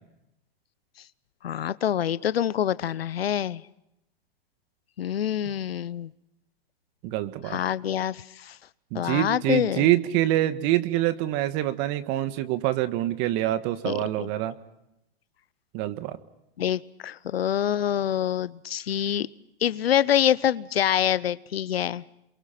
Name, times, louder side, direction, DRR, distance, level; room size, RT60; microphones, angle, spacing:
voice 1, 1.4-3.6 5.0-6.1 7.4-8.6 8.9-9.9 13.8-14.3 16.6-19.3 19.6-22.0, left 10 dB, 85° left, 19 dB, 0.8 m, -26 dB
voice 2, 7.0-7.6 8.9-14.5 15.7-16.2, right 14 dB, 40° right, 11 dB, 1.6 m, -25 dB
28.0 x 23.5 x 5.9 m, 0.85 s
hypercardioid pair, 130°, 29 cm